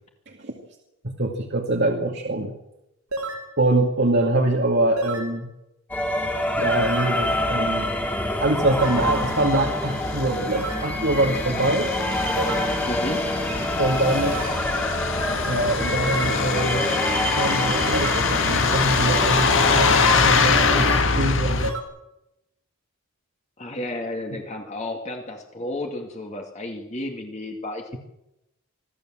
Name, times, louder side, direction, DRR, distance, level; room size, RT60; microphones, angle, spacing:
voice 1, 0.3-0.6 1.0-2.5 3.6-5.5 6.6-7.9 8.4-11.9 13.8-14.4 15.5-16.9 17.3-21.6, right 2 dB, 50° right, 1 dB, 2.3 m, -24 dB
sound 1, 3.1-3.5 5.0-5.3 6.8-7.2 8.7-9.0 10.5-10.9 12.4-12.8 14.2-14.6 16.1-16.5 17.9-18.3 19.8-20.2 21.6-21.8, right 2 dB, 85° right, 4.8 m, -30 dB
sound 2, 5.9-21.0, left 1 dB, 5° left, 2.6 m, -26 dB
Truck, 8.8-21.7, left 4 dB, 60° left, 1.9 m, -24 dB
voice 2, 12.9-13.2 23.6-28.0, left 1 dB, 30° left, 2 dB, 2.3 m, -32 dB
25.0 x 15.5 x 7.6 m, 0.88 s
head